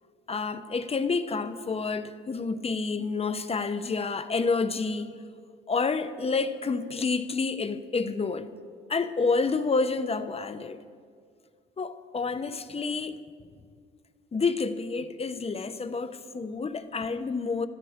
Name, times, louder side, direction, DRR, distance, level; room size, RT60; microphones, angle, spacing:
voice 1, 0.3-5.1 5.7-8.5 8.9-10.8 11.8-13.2 14.3-17.7, left 4 dB, 30° left, 0.9 m, -29 dB
25.5 x 13.5 x 3.7 m
cardioid pair, 90°, 20 cm